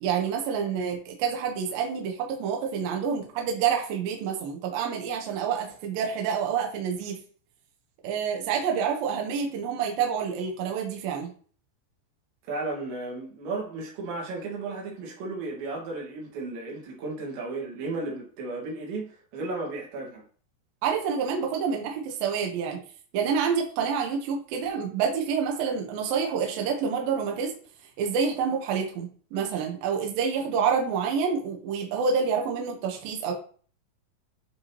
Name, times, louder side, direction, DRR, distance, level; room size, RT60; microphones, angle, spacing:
voice 1, 0.0-7.2 8.0-11.3 20.8-22.8 23.1-27.5 28.0-33.3, right 6 dB, 70° right, 2.5 m, -28 dB
voice 2, 12.5-20.2, right 3 dB, 85° right, 4.2 m, -34 dB
10.0 x 3.6 x 2.9 m
omnidirectional pair, 5.1 m